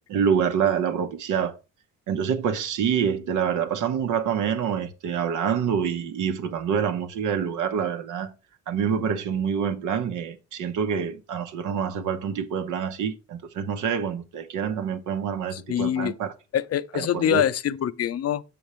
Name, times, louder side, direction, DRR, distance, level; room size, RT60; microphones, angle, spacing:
voice 1, 0.1-1.6 2.1-8.3 8.7-16.3 16.9-17.5, right 7 dB, 85° right, 1.0 m, -26 dB
voice 2, 15.5-16.1 16.5-18.4, left 10 dB, 55° left, 0.6 m, -25 dB
7.0 x 6.9 x 3.1 m
cardioid pair, 90°, 30 cm